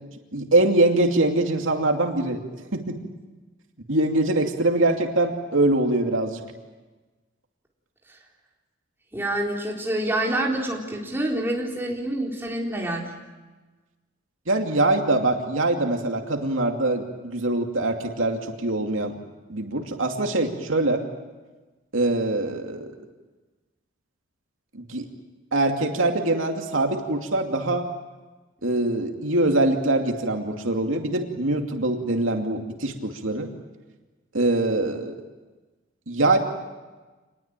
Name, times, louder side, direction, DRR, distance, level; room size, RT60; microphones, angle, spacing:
voice 1, 0.3-3.0 3.9-6.4 14.5-19.2 19.5-21.0 21.9-22.9 24.7-25.1 25.5-27.9 28.6-33.5 34.3-35.2 36.1-36.4, right 2 dB, 85° right, 3 dB, 2.6 m, -23 dB
voice 2, 9.1-13.1, right 1 dB, 10° right, -2 dB, 4.1 m, -27 dB
27.0 x 21.0 x 9.0 m, 1.3 s
head